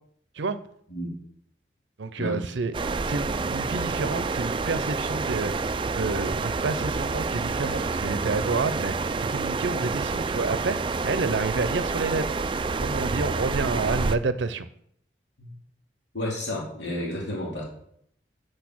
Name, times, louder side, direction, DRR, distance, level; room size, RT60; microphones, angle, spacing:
voice 1, 2.0-2.7 3.1-12.5 12.8-14.7, right 3 dB, 80° right, 0.6 m, -29 dB
sound 1, 2.7-14.2, right 4 dB, 25° right, 0.3 m, -28 dB
voice 2, 16.1-17.6, left 1 dB, 70° left, 2.6 m, -31 dB
8.3 x 6.5 x 6.1 m
head